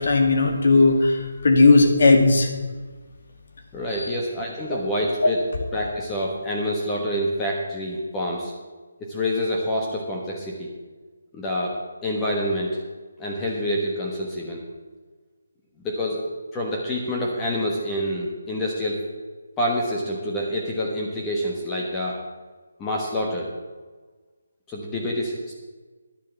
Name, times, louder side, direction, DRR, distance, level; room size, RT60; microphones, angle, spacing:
voice 1, 0.0-2.5 5.2-5.3, left 3 dB, 60° left, 3 dB, 2.1 m, -16 dB
voice 2, 3.7-5.4 5.7-8.5 9.0-10.7 11.3-11.8 12.0-12.8 13.2-14.6 15.8-19.0 19.6-22.2 22.8-23.5 24.7-25.5, equal, 15° left, -2 dB, 1.3 m, -27 dB
10.5 x 7.3 x 7.0 m, 1.3 s
figure-of-eight pair, 160°, 0 cm